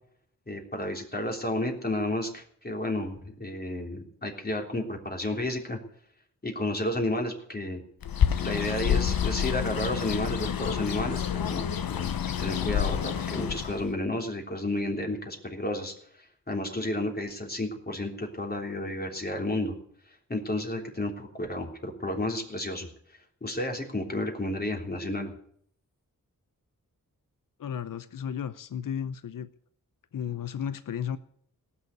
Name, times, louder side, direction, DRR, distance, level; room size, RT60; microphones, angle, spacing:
voice 1, 0.5-5.8 6.4-7.8 8.4-12.1 12.4-19.8 20.3-22.9 23.4-25.3, left 1 dB, 25° left, 2 dB, 3.5 m, -32 dB
Bird, 8.0-13.9, left 9 dB, 85° left, 1.1 m, -28 dB
voice 2, 27.6-29.5 30.1-31.2, left 8 dB, 70° left, 13 dB, 0.8 m, -34 dB
18.0 x 7.0 x 9.5 m, 0.65 s
wide cardioid pair, 75°, 34 cm